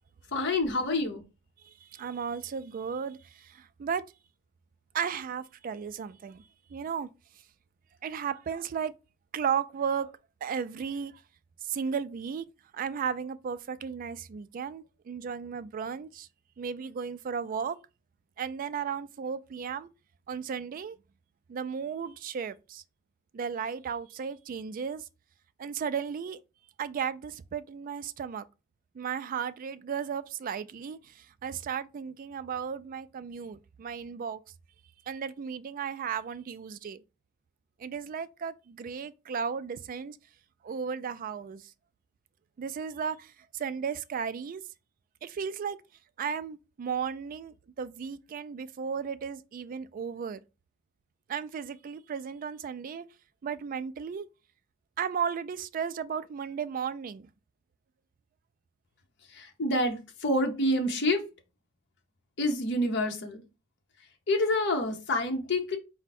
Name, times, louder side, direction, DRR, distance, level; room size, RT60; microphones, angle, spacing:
voice 1, 0.3-1.2 59.3-61.2 62.4-63.4 64.3-65.8, left 1 dB, 60° left, 0.8 m, -27 dB
voice 2, 1.6-4.0 4.9-6.4 6.7-7.1 8.0-8.9 9.3-10.1 10.4-11.1 11.6-12.5 12.7-16.3 16.6-17.8 18.4-19.9 20.3-21.0 21.5-22.8 23.3-25.1 25.6-26.4 26.8-28.4 28.9-34.4 35.1-37.0 37.8-40.2 40.6-41.7 42.6-44.6 45.2-45.8 46.2-50.4 51.3-53.1 53.4-54.3 55.0-57.3, right 7 dB, 45° right, 0.3 m, -35 dB
4.5 x 2.1 x 4.1 m
head